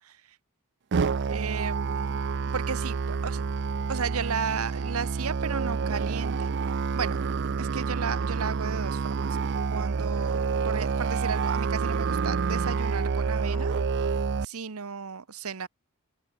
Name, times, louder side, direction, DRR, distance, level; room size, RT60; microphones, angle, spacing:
Musical instrument, 0.9-14.4, right 5 dB, 55° right, 0.5 m, -28 dB
voice 1, 1.0-2.2 2.5-3.4 3.9-6.6 6.9-7.2 7.6-9.4 9.7-13.8 14.4-15.7, right 6 dB, 75° right, 1.0 m, -34 dB
sound 1, 9.4-9.9 10.5-11.2 11.7-12.6 12.8-13.9, left 3 dB, 85° left, 6.0 m, -52 dB
open air
head